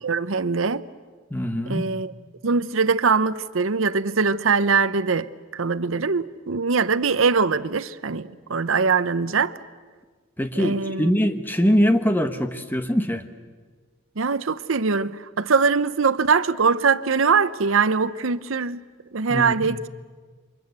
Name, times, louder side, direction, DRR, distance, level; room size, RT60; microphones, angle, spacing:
voice 1, 0.0-0.8 1.7-2.1 2.4-9.5 10.6-11.1 14.2-18.8 19.1-19.9, right 5 dB, 80° right, 0.8 m, -22 dB
voice 2, 1.3-1.9 10.4-13.2 19.3-19.7, equal, 10° left, 1.2 m, -22 dB
28.5 x 25.0 x 8.1 m
head